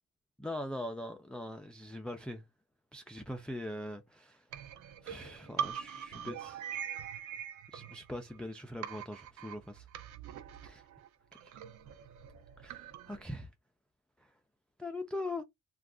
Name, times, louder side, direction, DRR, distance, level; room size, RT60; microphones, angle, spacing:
voice 1, 0.4-2.4 2.9-4.5 5.0-6.7 7.7-9.9 10.6-10.8 11.4-11.5 12.6-13.5 14.2-14.3 14.8-15.4, left 1 dB, 5° left, 0.4 m, -41 dB
sound 1, 4.5-8.5 8.8-13.2, right 8 dB, 70° right, 0.6 m, -43 dB
2.4 x 2.3 x 3.5 m
cardioid pair, 90°, 30 cm